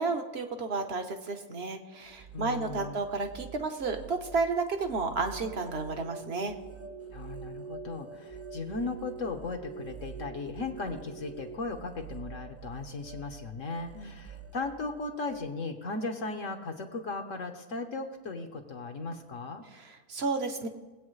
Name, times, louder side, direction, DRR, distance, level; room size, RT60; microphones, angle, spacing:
voice 1, 0.0-6.5 13.9-14.1 19.7-20.7, right 4 dB, 45° right, 6 dB, 1.1 m, -32 dB
sound 1, 1.9-15.4, right 5 dB, 15° right, 0.6 m, -48 dB
voice 2, 2.3-3.0 7.1-19.6, left 3 dB, 60° left, 4 dB, 1.4 m, -37 dB
sound 2, 5.1-11.6, right 6 dB, 85° right, 1.4 m, -46 dB
21.5 x 8.4 x 3.2 m, 1.2 s
omnidirectional pair, 1.6 m